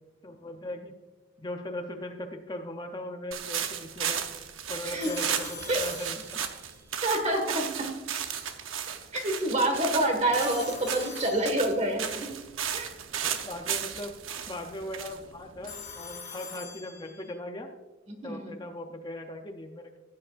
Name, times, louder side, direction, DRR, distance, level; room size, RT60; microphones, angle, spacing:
voice 1, 0.2-0.9 1.4-4.2 4.7-6.4 13.2-14.1 14.5-17.7 18.2-20.0, left 1 dB, 20° left, 4 dB, 0.6 m, -39 dB
sound 1, 3.3-16.1, right 8 dB, 90° right, 0.9 m, -35 dB
Telephone, 5.0-6.8 10.3-12.0 15.6-17.3, left 6 dB, 40° left, 2.0 m, -44 dB
voice 2, 7.0-8.0 9.1-12.3 12.7-12.9 18.1-18.6, right 1 dB, 35° right, 5 dB, 1.7 m, -27 dB
15.5 x 9.5 x 2.5 m, 1.1 s
head